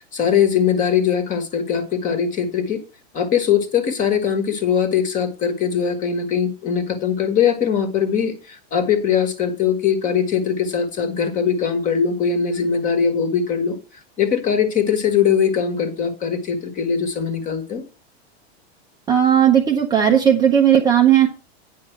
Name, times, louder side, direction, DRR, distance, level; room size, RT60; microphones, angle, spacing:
voice 1, 0.1-2.8 3.1-13.8 14.2-17.8, left 7 dB, 25° left, 8 dB, 1.4 m, -21 dB
voice 2, 19.1-21.3, right 9 dB, 10° right, 1 dB, 0.6 m, -15 dB
9.3 x 5.5 x 5.9 m, 0.34 s
supercardioid pair, 160°, 33 cm